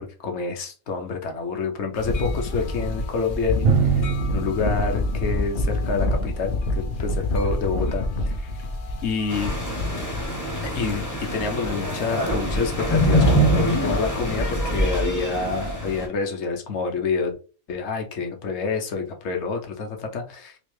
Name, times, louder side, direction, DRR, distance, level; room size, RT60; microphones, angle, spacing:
voice 1, 0.0-8.5 9.0-9.5 10.7-17.3 17.7-20.6, left 4 dB, 55° left, 3 dB, 0.9 m, -28 dB
sound 1, 1.9-14.5, left 2 dB, 75° left, 0.4 m, -28 dB
Drum, 3.6-7.2, right 6 dB, 60° right, 0.6 m, -26 dB
sound 2, 9.3-16.1, equal, 20° left, 0.6 m, -24 dB
3.2 x 2.5 x 3.1 m, 0.36 s
omnidirectional pair, 1.5 m